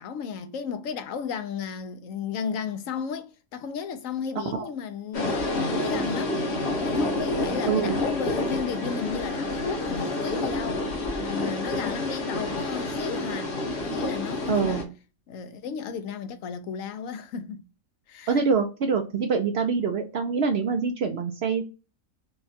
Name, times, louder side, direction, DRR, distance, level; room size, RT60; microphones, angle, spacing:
voice 1, 0.0-6.4 6.8-10.8 11.2-13.6 13.8-14.9 15.3-17.6 18.1-18.4, left 6 dB, 70° left, 1.0 m, -34 dB
sound 1, 5.1-14.8, left 2 dB, 50° left, 1.3 m, -29 dB
voice 2, 5.7-6.0 7.7-8.0 14.5-14.8 18.3-21.6, right 5 dB, 65° right, 0.6 m, -25 dB
5.6 x 2.2 x 2.6 m
omnidirectional pair, 1.5 m